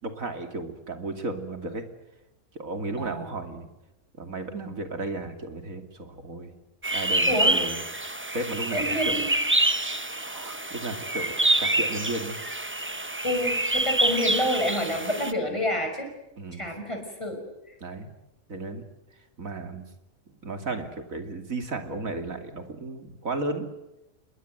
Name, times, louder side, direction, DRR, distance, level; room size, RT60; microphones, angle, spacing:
voice 1, 0.0-1.8 2.5-3.7 4.2-6.5 6.9-7.8 8.3-9.2 10.2-12.4 16.4-16.6 17.8-18.1 18.5-18.8 19.4-19.9 20.4-23.7, right 2 dB, 70° right, 6 dB, 3.1 m, -34 dB
voice 2, 3.0-3.3 7.3-7.6 8.7-9.3 13.2-16.1 16.5-17.4, left 1 dB, 20° left, 4 dB, 5.9 m, -28 dB
sound 1, 6.8-15.3, right 2 dB, 10° right, 0.8 m, -26 dB
27.0 x 21.5 x 8.0 m, 0.93 s
omnidirectional pair, 1.5 m